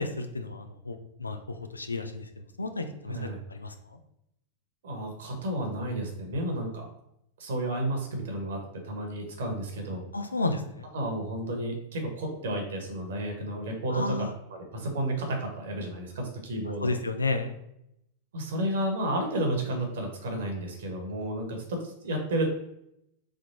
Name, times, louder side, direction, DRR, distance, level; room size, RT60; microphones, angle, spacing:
voice 1, 0.0-2.3 2.6-3.7 10.1-10.9 13.9-14.3 16.8-17.5, left 3 dB, 80° left, 6 dB, 0.5 m, -32 dB
voice 2, 3.1-3.4 4.8-6.9 7.4-10.0 10.9-17.0 18.3-22.5, right 1 dB, 60° right, 2 dB, 1.3 m, -32 dB
3.7 x 3.5 x 4.1 m, 0.79 s
figure-of-eight pair, 90°, 0 cm